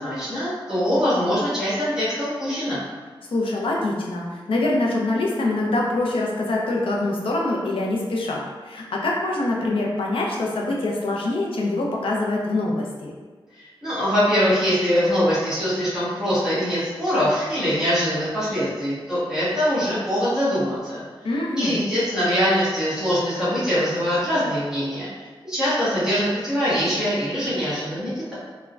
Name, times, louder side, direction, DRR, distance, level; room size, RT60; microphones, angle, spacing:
voice 1, 0.0-2.8 13.5-21.0 21.5-28.3, equal, 5° right, -12 dB, 1.2 m, -23 dB
voice 2, 3.3-13.1 21.2-21.8, left 2 dB, 70° left, -2 dB, 0.5 m, -24 dB
3.3 x 2.1 x 2.4 m, 1.4 s
wide cardioid pair, 90°, 9 cm